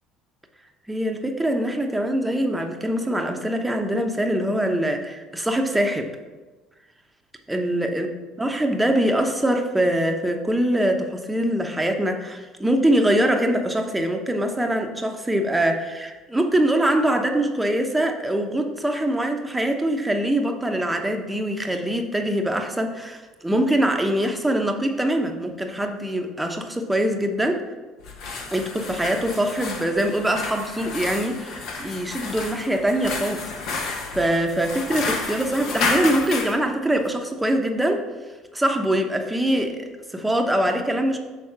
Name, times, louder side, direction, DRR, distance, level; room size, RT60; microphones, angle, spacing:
voice 1, 0.9-6.1 7.5-27.6 28.5-38.0 38.5-41.2, right 1 dB, 10° right, 4 dB, 0.9 m, -23 dB
sound 1, 28.0-36.6, left 3 dB, 65° left, 1.0 m, -31 dB
6.4 x 3.8 x 5.9 m, 1.3 s
supercardioid pair, 90°, 0 cm